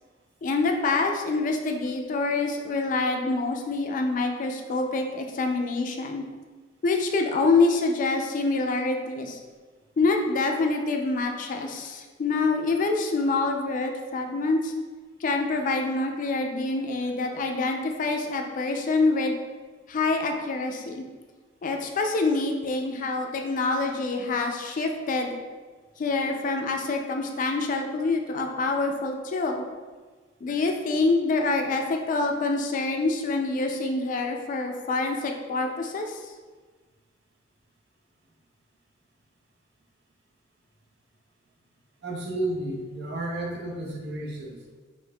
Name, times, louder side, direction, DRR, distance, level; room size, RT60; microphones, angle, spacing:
voice 1, 0.4-6.2 6.8-9.4 10.0-14.7 15.2-19.4 19.9-21.1 21.6-25.4 26.0-29.6 30.4-36.3, left 3 dB, 45° left, 3 dB, 0.3 m, -26 dB
voice 2, 42.0-44.6, right 1 dB, 60° right, -1 dB, 0.7 m, -32 dB
5.2 x 2.5 x 2.2 m, 1.4 s
head